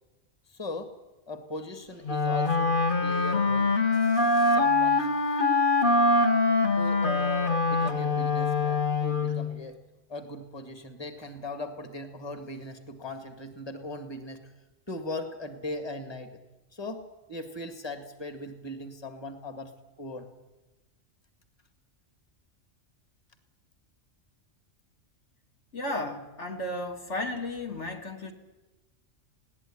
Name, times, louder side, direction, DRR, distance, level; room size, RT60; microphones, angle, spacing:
voice 1, 0.5-0.9 1.3-5.1 6.5-9.8 10.1-14.5 14.9-16.3 16.7-17.0 17.3-19.7 20.0-20.3, left 2 dB, 20° left, 7 dB, 2.1 m, -39 dB
Wind instrument woodwind instrument, 2.0-9.5, left 3 dB, 40° left, 1.8 m, -24 dB
voice 2, 25.7-28.3, left 1 dB, 65° left, 2 dB, 2.8 m, -34 dB
21.0 x 18.0 x 10.0 m, 1.1 s
omnidirectional pair, 1.3 m